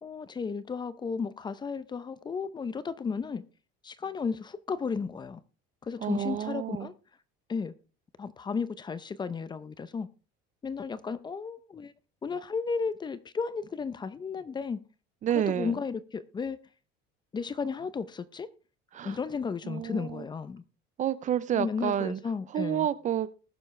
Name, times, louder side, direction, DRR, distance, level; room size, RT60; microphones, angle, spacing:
voice 1, 0.0-3.4 3.8-5.4 5.8-6.9 7.5-7.7 8.2-10.1 10.6-11.9 12.2-14.8 15.5-16.6 17.3-18.5 19.0-20.6 21.6-22.9, left 5 dB, 20° left, 0.6 m, -34 dB
voice 2, 6.0-6.9 15.2-15.7 18.9-19.2 19.6-20.2 21.0-22.2 22.5-23.3, right 10 dB, 35° right, 0.6 m, -29 dB
20.0 x 7.0 x 3.3 m
cardioid pair, 140°, 21 cm